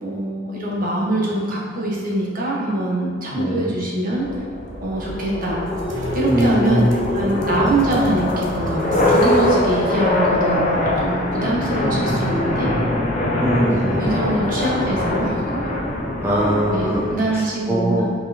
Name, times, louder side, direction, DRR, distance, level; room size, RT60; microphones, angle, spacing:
voice 1, 0.0-4.3 4.8-5.7 6.1-6.8 7.1-12.7 13.9-15.6 16.7-18.1, right 1 dB, 45° right, -4 dB, 1.4 m, -23 dB
voice 2, 3.3-3.7 6.3-7.0 13.4-14.1 16.2-17.1 17.3-18.1, right 1 dB, 10° right, -6 dB, 0.6 m, -21 dB
sound 1, 4.1-17.1, left 1 dB, 40° left, 1.0 m, -22 dB
sound 2, 5.7-9.7, equal, 70° right, 1.1 m, -32 dB
5.7 x 4.8 x 4.3 m, 2.1 s
head